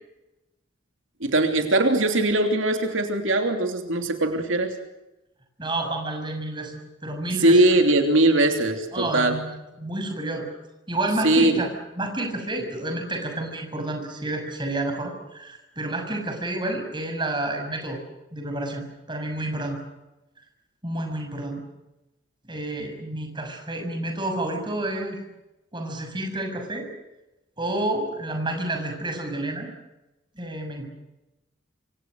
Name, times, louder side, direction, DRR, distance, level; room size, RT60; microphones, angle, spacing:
voice 1, 1.2-4.7 7.4-9.4 11.2-11.6, right 2 dB, 80° right, 5 dB, 3.1 m, -20 dB
voice 2, 5.6-7.6 8.9-10.5 10.9-11.7 12.0-18.0 18.3-19.8 20.8-21.6 22.4-25.2 25.7-26.9 27.6-29.7 30.3-30.9, right 1 dB, 25° right, 4 dB, 6.5 m, -30 dB
27.0 x 25.5 x 6.5 m, 0.99 s
head